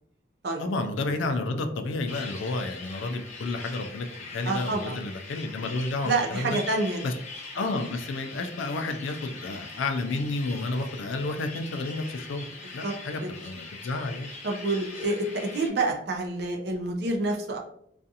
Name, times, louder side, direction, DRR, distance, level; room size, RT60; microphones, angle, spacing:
voice 1, 0.6-6.6 7.0-7.1 7.5-12.5 12.7-14.3, left 2 dB, 80° left, 6 dB, 0.4 m, -31 dB
sound 1, 2.0-15.7, left 3 dB, 35° left, 0.7 m, -42 dB
voice 2, 4.5-5.0 6.0-7.0 7.6-7.7 12.8-12.9 13.2-13.3 14.4-17.6, right 2 dB, 55° right, 2 dB, 0.5 m, -28 dB
2.5 x 2.3 x 2.7 m, 0.70 s
head